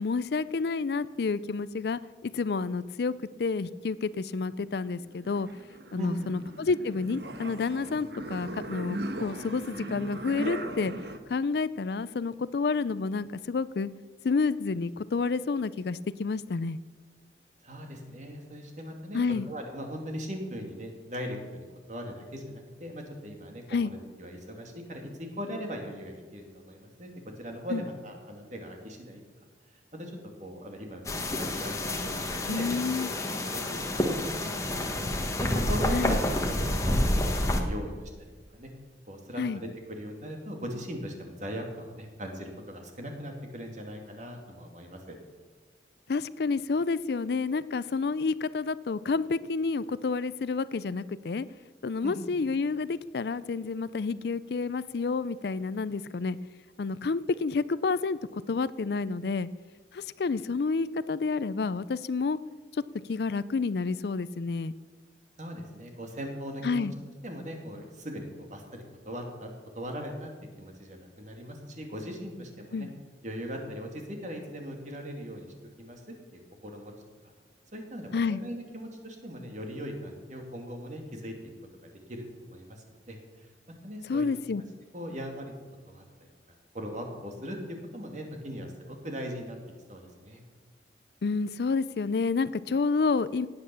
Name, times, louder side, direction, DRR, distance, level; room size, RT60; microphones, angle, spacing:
voice 1, 0.0-5.5 5.9-10.9 11.3-13.9 14.2-16.8 19.1-19.5 23.7-23.9 27.7-27.8 32.5-33.1 35.9-36.2 39.4-39.6 46.1-51.5 51.8-56.4 56.8-59.5 59.9-62.4 62.7-62.8 63.1-64.7 66.6-66.9 72.7-72.9 78.1-78.4 84.1-84.6 91.2-93.5, left 4 dB, 60° left, 17 dB, 0.4 m, -29 dB
sound 1, 4.7-11.2, right 1 dB, 65° right, 1.3 m, -38 dB
voice 2, 6.0-6.3 17.6-19.2 19.5-27.1 27.4-29.2 29.9-33.1 33.5-37.1 37.5-38.7 39.1-45.0 52.0-52.2 65.4-66.9 67.2-69.5 69.7-70.3 70.6-72.9 73.2-75.5 75.8-76.0 76.3-76.9 77.7-81.3 81.8-83.5 83.8-84.3 84.9-85.5 85.9-86.3 86.7-89.6 89.9-90.4, equal, 40° right, 3 dB, 2.5 m, -39 dB
sound 2, 31.0-37.6, left 1 dB, 15° left, 1.3 m, -29 dB
17.5 x 8.8 x 7.0 m, 1.4 s
head